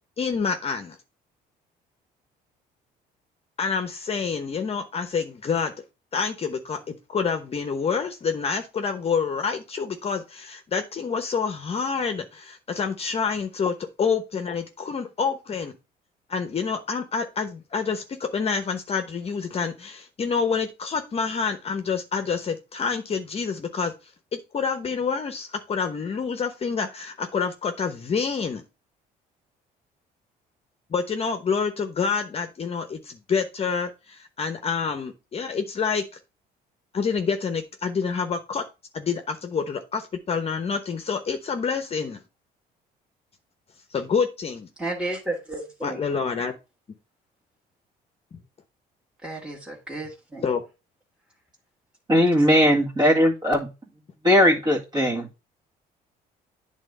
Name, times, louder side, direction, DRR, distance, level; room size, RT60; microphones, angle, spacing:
voice 1, 0.2-1.0 3.6-5.7 6.1-15.7 16.3-23.9 24.3-28.6 30.9-36.0 36.9-38.6 38.9-42.2 43.9-44.7 45.8-46.5 48.3-48.4 50.4-50.6, left 5 dB, 35° left, 6 dB, 1.0 m, -27 dB
voice 2, 44.8-46.1 49.2-50.5 52.4-52.5, right 2 dB, 5° right, -5 dB, 1.9 m, -33 dB
voice 3, 52.1-53.7 54.2-55.4, equal, 25° right, -2 dB, 1.9 m, -19 dB
8.9 x 3.6 x 5.4 m, 0.29 s
cardioid pair, 110°, 17 cm